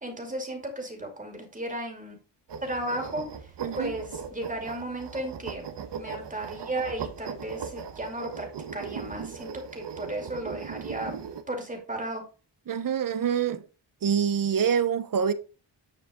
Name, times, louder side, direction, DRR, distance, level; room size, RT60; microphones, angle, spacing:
voice 1, 0.0-2.2 2.6-3.3 3.8-5.7 6.0-8.5 8.7-11.1 11.5-12.2, right 1 dB, 20° right, 2.6 m, -34 dB
sound 1, 2.5-11.4, right 6 dB, 75° right, 1.2 m, -39 dB
voice 2, 3.6-3.9 12.7-13.6 14.0-15.3, right 7 dB, 50° right, 0.9 m, -26 dB
9.9 x 4.9 x 3.7 m
wide cardioid pair, 155°, 42 cm